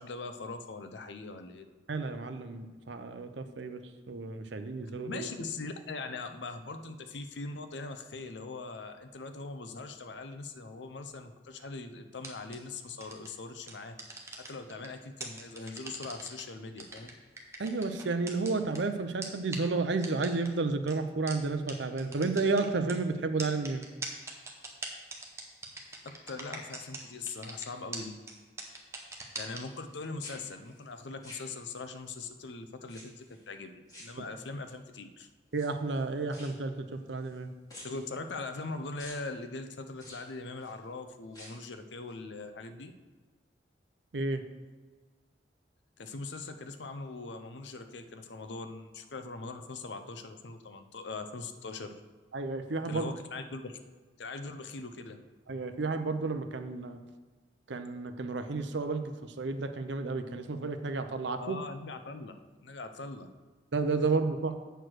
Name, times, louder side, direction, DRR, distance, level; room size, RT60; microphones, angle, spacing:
voice 1, 0.0-1.6 5.0-14.0 14.4-17.1 26.0-28.2 29.4-35.3 37.8-42.9 46.0-52.0 52.9-53.8 54.2-55.2 61.4-62.3 62.6-63.3, left 3 dB, 75° left, 8 dB, 0.6 m, -41 dB
voice 2, 1.9-3.8 4.1-5.3 17.6-23.8 34.2-34.3 35.5-37.5 44.1-44.4 52.3-53.1 55.5-57.0 57.7-61.6 63.7-64.5, right 3 dB, 80° right, 7 dB, 0.7 m, -32 dB
sound 1, 12.2-12.6 13.0-13.3 13.7-14.9 15.2-16.4 16.8-18.8 19.2-19.3 19.5-19.6 20.0-20.5 20.9-21.0 21.3-21.4 21.7-21.8 22.0-22.9 23.4-27.0 27.3-27.7 27.9-28.0 28.3-28.4 28.6-29.6, right 3 dB, 15° right, 0.9 m, -40 dB
sound 2, 25.1-25.9 26.4-26.8 27.1-28.1 28.4-29.9 30.2-32.0 32.8-33.4 33.9-34.7 35.5-37.4 37.7-38.7 39.0-39.3 39.9-40.8 41.2-41.7 42.1-42.2, left 1 dB, 20° left, 2.4 m, -53 dB
8.0 x 4.5 x 6.3 m, 1.4 s
head